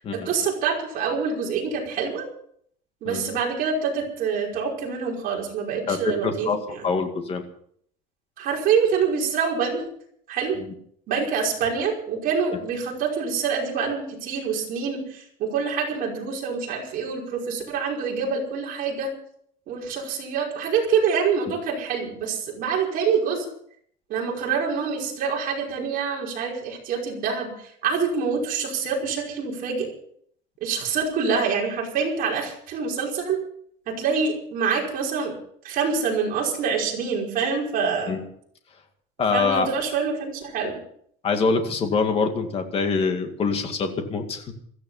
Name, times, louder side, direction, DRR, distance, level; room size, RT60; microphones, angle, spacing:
voice 1, 0.0-2.3 3.0-6.9 8.4-9.8 10.3-10.6 11.1-19.1 19.7-23.5 24.1-29.9 30.6-33.4 33.9-35.3 35.6-38.1 39.3-40.8, right 6 dB, 45° right, -1 dB, 5.3 m, -26 dB
voice 2, 5.9-6.6 6.8-7.4 10.6-10.7 38.1-38.2 39.2-39.7 41.2-44.5, left 4 dB, 30° left, 5 dB, 2.2 m, -25 dB
16.5 x 14.5 x 5.7 m, 0.65 s
cardioid pair, 170°, 20 cm